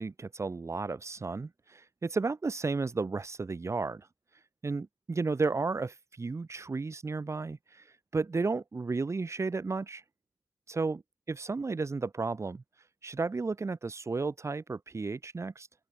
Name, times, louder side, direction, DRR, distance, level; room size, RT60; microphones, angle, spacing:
voice 1, 0.0-4.1 4.6-7.9 8.1-10.0 10.7-11.0 11.3-12.6 13.0-15.7, right 4 dB, 45° right, 6.0 m, -33 dB
open air
cardioid pair, 55°, 7 cm